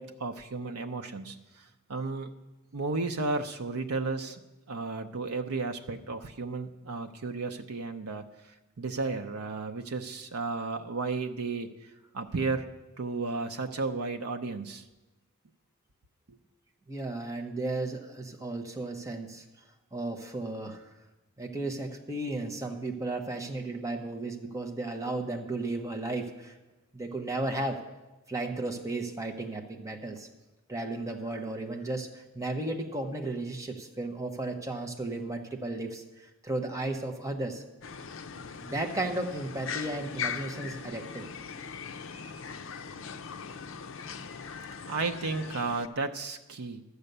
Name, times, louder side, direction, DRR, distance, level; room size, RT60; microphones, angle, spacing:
voice 1, 0.0-2.3 2.7-4.4 4.7-12.7 13.0-14.8 16.3-16.4 44.9-46.8, right 3 dB, 80° right, 5 dB, 0.7 m, -33 dB
voice 2, 16.9-19.4 19.9-20.9 21.4-26.5 26.9-27.8 28.3-30.3 30.7-37.6 38.6-41.3, right 2 dB, 15° right, 2 dB, 0.9 m, -34 dB
sound 1, 37.8-45.9, left 6 dB, 60° left, 0.6 m, -40 dB
12.0 x 8.1 x 6.7 m, 1.1 s
head